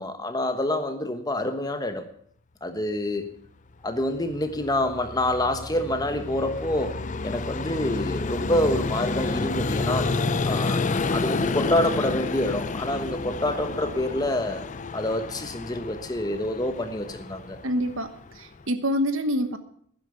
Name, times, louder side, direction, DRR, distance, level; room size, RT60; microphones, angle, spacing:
voice 1, 0.0-2.1 2.6-3.3 3.8-10.1 10.5-10.8 11.1-14.6 14.9-17.6, left 1 dB, 20° left, 7 dB, 1.1 m, -27 dB
Vehicle, 4.0-18.6, left 3 dB, 35° left, 0.5 m, -30 dB
voice 2, 17.6-19.6, equal, 70° right, 10 dB, 1.2 m, -26 dB
11.5 x 10.5 x 6.9 m, 0.63 s
head